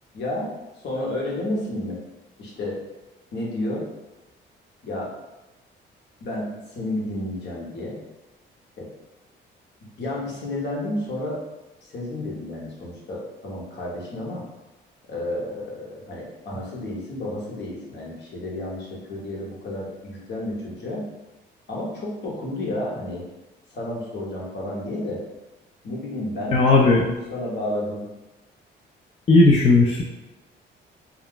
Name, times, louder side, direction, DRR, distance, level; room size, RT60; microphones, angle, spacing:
voice 1, 0.1-0.5 0.8-2.0 2.4-2.8 3.3-3.8 4.8-5.1 6.2-8.0 8.8-8.9 10.0-11.4 11.8-14.4 15.1-21.1 21.7-23.2 23.7-25.2 25.8-28.0, left 1 dB, 60° left, -4 dB, 1.0 m, -31 dB
voice 2, 26.5-27.0 29.3-30.0, left 3 dB, 30° left, -2 dB, 0.4 m, -15 dB
2.3 x 2.1 x 3.7 m, 1.1 s
cardioid pair, 90°, 20 cm